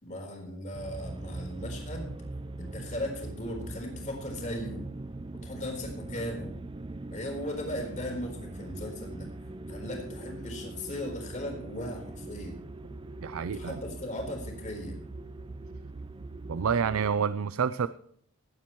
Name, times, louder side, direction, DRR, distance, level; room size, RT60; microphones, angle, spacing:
voice 1, 0.0-2.1 2.6-4.9 5.3-6.5 7.1-9.3 9.7-12.6 13.5-15.0, left 1 dB, 35° left, 1 dB, 4.1 m, -37 dB
sound 1, 0.7-17.1, right 2 dB, 25° right, 0.5 m, -41 dB
voice 2, 13.2-13.8 16.5-17.9, right 6 dB, 90° right, 14 dB, 0.4 m, -28 dB
17.0 x 11.0 x 3.1 m, 0.65 s
head